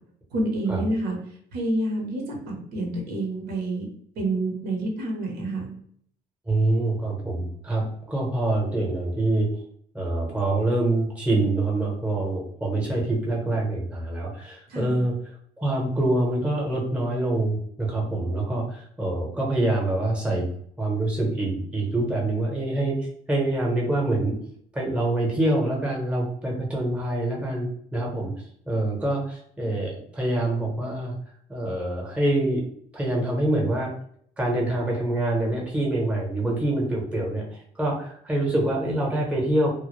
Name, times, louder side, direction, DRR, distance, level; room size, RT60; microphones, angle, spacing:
voice 1, 0.3-1.2 1.5-3.9 4.2-5.7 14.7-15.0, right 2 dB, 75° right, 0 dB, 0.9 m, -28 dB
voice 2, 6.5-9.5 9.9-15.1 15.6-20.5 20.8-24.4 24.7-28.3 28.7-31.1 31.5-32.6 32.9-33.9 34.4-39.7, right 1 dB, 5° right, -2 dB, 0.8 m, -25 dB
2.1 x 2.0 x 3.0 m, 0.65 s
cardioid pair, 110°, 17 cm